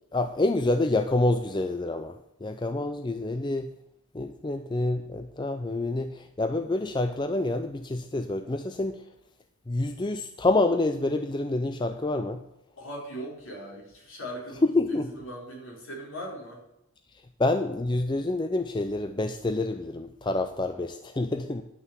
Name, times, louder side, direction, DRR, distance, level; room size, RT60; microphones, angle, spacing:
voice 1, 0.1-3.7 4.1-9.1 9.7-12.4 14.6-15.1 17.4-21.6, left 2 dB, 20° left, 8 dB, 0.4 m, -27 dB
voice 2, 12.8-16.6, equal, 65° left, -2 dB, 4.3 m, -40 dB
11.0 x 5.7 x 8.1 m, 0.85 s
head